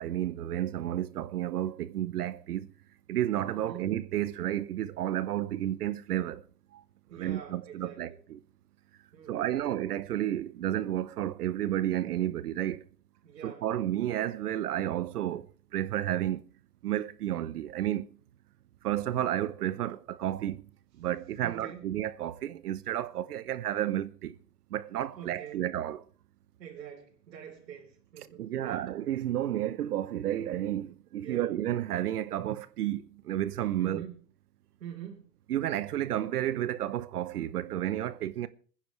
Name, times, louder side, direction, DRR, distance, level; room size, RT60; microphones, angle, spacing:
voice 1, 0.0-2.7 3.1-6.4 6.7-6.8 7.1-8.4 9.3-12.8 13.4-15.5 15.7-16.4 16.8-18.1 18.8-20.6 21.0-24.4 24.7-26.0 28.4-34.0 35.5-38.5, right 12 dB, 65° right, 0.9 m, -31 dB
voice 2, 3.5-4.0 7.1-8.2 9.1-9.7 13.2-13.7 21.4-21.9 25.2-25.7 26.6-28.8 31.2-31.5 33.8-34.2 34.8-35.3, right 9 dB, 85° right, 4.1 m, -45 dB
27.0 x 10.0 x 3.2 m
hypercardioid pair, 160°, 49 cm